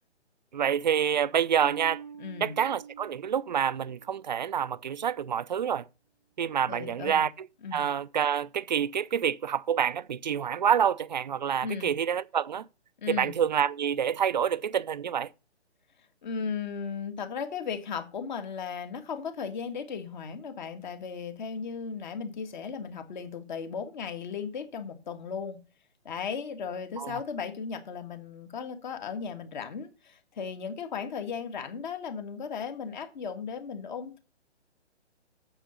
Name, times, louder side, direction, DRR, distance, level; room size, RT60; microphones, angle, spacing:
voice 1, 0.5-2.0 2.4-5.8 6.4-7.5 7.7-12.6 13.1-15.3 27.0-27.2, right 8 dB, 40° right, 0.5 m, -27 dB
Bass guitar, 1.6-4.3, right 8 dB, ahead, 0.9 m, -46 dB
voice 2, 2.2-2.5 6.7-7.2 7.6-7.8 11.6-12.0 13.0-13.4 16.2-25.6 26.0-34.2, left 6 dB, 40° left, 1.7 m, -36 dB
8.9 x 7.2 x 5.4 m
figure-of-eight pair, 145°, 35 cm